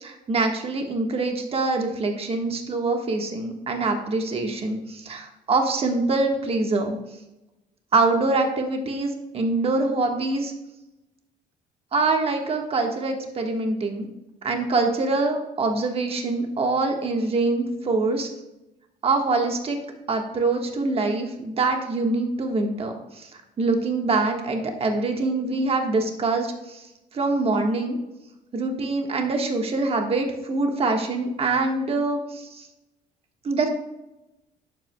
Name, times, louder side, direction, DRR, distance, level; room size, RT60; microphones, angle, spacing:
voice 1, 0.0-7.0 7.9-10.5 11.9-14.1 14.4-18.3 19.0-19.8 20.1-23.3 23.6-26.8 27.1-28.0 28.5-32.7 33.4-33.7, right 3 dB, 35° right, 3 dB, 1.4 m, -24 dB
11.0 x 7.8 x 2.2 m, 0.96 s
cardioid pair, 110°, 17 cm